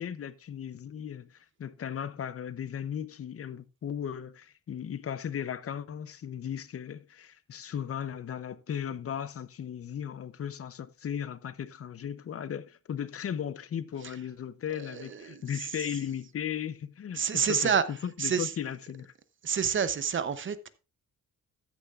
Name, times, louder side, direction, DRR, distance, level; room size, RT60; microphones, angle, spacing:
voice 1, 0.0-19.1, left 9 dB, 45° left, 0.7 m, -36 dB
voice 2, 14.7-15.7 17.1-17.8 18.2-18.5 19.4-20.7, right 7 dB, 40° right, 0.8 m, -29 dB
14.0 x 10.0 x 2.4 m
wide cardioid pair, 180°, 32 cm